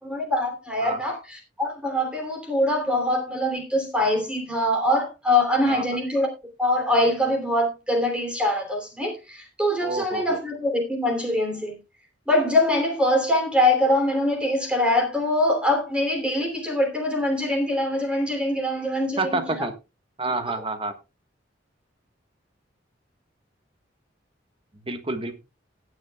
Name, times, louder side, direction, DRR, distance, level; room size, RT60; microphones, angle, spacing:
voice 1, 0.0-6.3 6.6-11.8 12.3-19.7, left 1 dB, 5° right, 3.0 m, -23 dB
voice 2, 9.8-10.4 19.2-19.7 20.2-20.9 24.9-25.4, right 2 dB, 30° right, 1.4 m, -28 dB
18.0 x 9.6 x 2.3 m
head